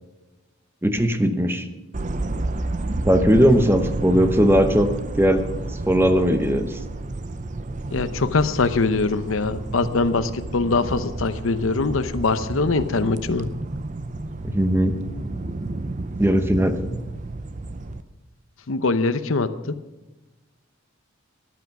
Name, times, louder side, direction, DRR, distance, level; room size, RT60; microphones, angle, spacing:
voice 1, 0.8-1.7 3.0-4.9 5.2-5.4 5.9-6.8 14.4-14.9 16.2-17.0, equal, 10° right, 8 dB, 0.9 m, -19 dB
sound 1, 1.9-18.0, right 2 dB, 40° right, 0.6 m, -31 dB
voice 2, 7.9-13.5 18.7-19.7, left 3 dB, 80° left, 12 dB, 0.8 m, -23 dB
14.0 x 10.5 x 5.8 m, 1.1 s
head